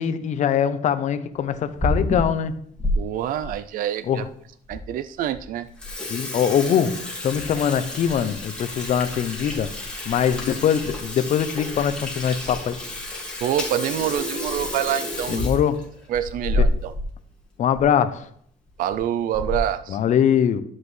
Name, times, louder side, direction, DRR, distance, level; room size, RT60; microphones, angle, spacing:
voice 1, 0.0-2.5 4.0-4.3 6.1-9.7 10.1-12.8 15.3-15.8 16.6-16.7 17.6-18.2 19.9-20.6, left 8 dB, 50° left, 0.6 m, -22 dB
Water tap faucet / Sink (filling or washing), 1.5-2.9 3.4-3.5 4.2-4.3 4.7-4.8 5.2-5.4 5.7-17.1 17.4-17.5 17.7-17.9 18.7-18.9 19.3-19.8, left 1 dB, 5° left, 2.0 m, -29 dB
voice 2, 3.0-4.2 4.7-5.7 13.4-15.5 16.1-16.9 18.8-20.0, right 10 dB, 60° right, 0.4 m, -26 dB
11.5 x 7.5 x 3.2 m
cardioid pair, 155°, 16 cm